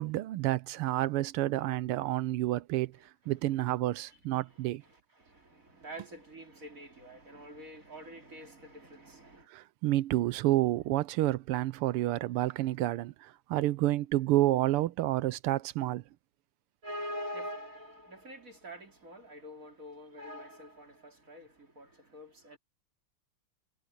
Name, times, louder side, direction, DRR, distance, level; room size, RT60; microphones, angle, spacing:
voice 1, 0.0-3.0 3.3-4.8 9.5-16.0, right 15 dB, 85° right, 1.6 m, -29 dB
voice 2, 4.1-9.5 16.8-22.6, equal, 35° right, 3.7 m, -45 dB
omnidirectional pair, 2.4 m